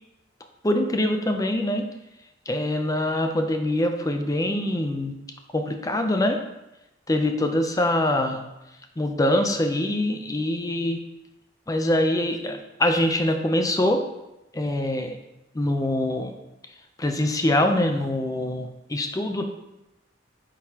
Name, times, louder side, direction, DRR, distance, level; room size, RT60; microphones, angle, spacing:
voice 1, 0.6-1.9 2.5-5.1 5.5-6.4 7.1-8.4 9.0-11.0 11.7-14.0 14.5-15.2 15.5-16.3 17.0-19.4, left 1 dB, 20° left, 5 dB, 0.5 m, -24 dB
9.5 x 3.9 x 2.8 m, 0.93 s
head